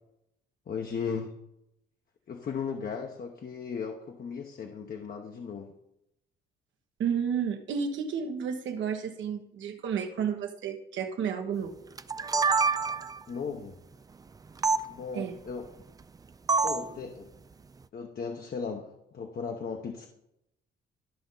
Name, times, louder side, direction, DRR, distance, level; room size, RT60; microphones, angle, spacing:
voice 1, 0.7-1.3 2.3-5.7 12.8-13.0 13.3-13.8 14.8-15.7 16.6-17.3 17.9-20.1, left 6 dB, 50° left, 3 dB, 0.9 m, -36 dB
voice 2, 7.0-11.7 15.1-15.4 16.9-17.0, right 7 dB, 75° right, 3 dB, 1.3 m, -31 dB
sound 1, 12.0-13.2 14.6-14.8 16.5-16.9, right 4 dB, 20° right, 0.3 m, -26 dB
13.0 x 5.3 x 3.9 m, 0.85 s
cardioid pair, 90°, 20 cm